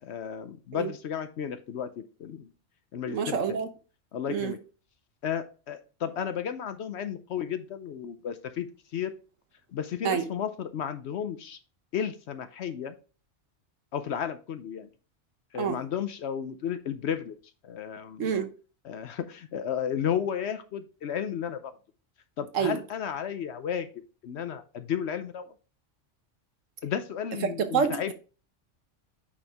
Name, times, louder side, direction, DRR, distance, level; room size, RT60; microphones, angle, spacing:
voice 1, 0.0-2.5 2.9-3.6 4.1-4.6 5.2-8.7 8.9-9.1 9.7-11.6 11.9-12.9 13.9-14.9 15.5-17.3 17.6-18.3 18.8-21.7 22.4-23.9 24.2-25.5 26.8-28.1, left 8 dB, 65° left, 0.9 m, -33 dB
voice 2, 3.1-3.7 4.3-4.5 10.0-10.3 15.6-15.8 18.2-18.5 22.5-22.8 27.4-28.1, right 7 dB, 85° right, 1.3 m, -27 dB
8.6 x 4.4 x 3.4 m
omnidirectional pair, 1.3 m